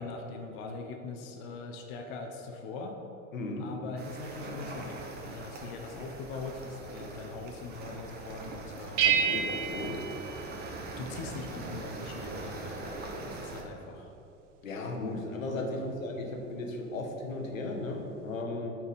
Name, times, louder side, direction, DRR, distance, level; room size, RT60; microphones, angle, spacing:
voice 1, 0.0-3.0 3.6-9.2 10.9-14.1 15.7-16.0, left 4 dB, 45° left, 4 dB, 0.6 m, -42 dB
voice 2, 3.3-3.7 9.0-10.0 14.6-18.8, left 2 dB, 80° left, 3 dB, 0.8 m, -36 dB
sound 1, 4.0-13.6, right 2 dB, 25° right, 0.7 m, -42 dB
sound 2, 9.0-11.2, right 8 dB, 65° right, 0.6 m, -30 dB
5.7 x 3.5 x 4.9 m, 2.8 s
figure-of-eight pair, 85°, 40 cm